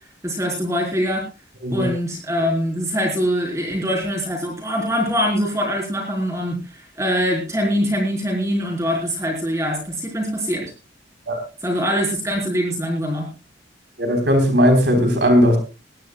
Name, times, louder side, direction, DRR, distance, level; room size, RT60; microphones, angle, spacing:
voice 1, 0.2-1.2 1.7-10.6 11.6-13.3, equal, 15° right, 0 dB, 4.0 m, -23 dB
voice 2, 14.0-15.6, equal, 75° right, 5 dB, 3.9 m, -17 dB
20.5 x 16.5 x 2.3 m, 0.32 s
head